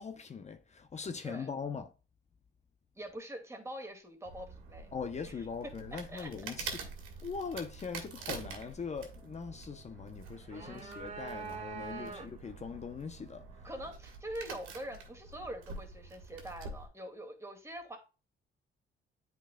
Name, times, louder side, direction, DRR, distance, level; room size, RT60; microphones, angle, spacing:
voice 1, 0.0-1.9 4.9-6.7 7.2-13.4, left 5 dB, 35° left, 0.8 m, -41 dB
voice 2, 3.0-4.9 5.2-6.3 10.5-11.0 11.9-12.3 13.6-18.0, right 1 dB, 15° right, 2.2 m, -45 dB
sound 1, 4.2-16.9, right 4 dB, 90° right, 1.6 m, -47 dB
sound 2, 10.3-12.6, right 5 dB, 35° right, 1.8 m, -44 dB
8.9 x 4.6 x 2.3 m
cardioid pair, 90°, 20 cm